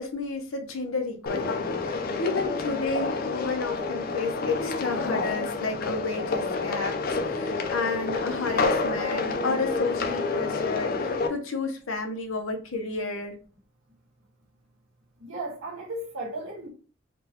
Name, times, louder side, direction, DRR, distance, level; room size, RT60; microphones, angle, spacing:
voice 1, 0.0-13.3, left 3 dB, 75° left, 0.8 m, -31 dB
sound 1, 1.3-11.3, left 3 dB, 45° left, 0.5 m, -29 dB
voice 2, 15.2-16.7, right 2 dB, 75° right, 1.4 m, -35 dB
3.8 x 2.3 x 2.8 m
head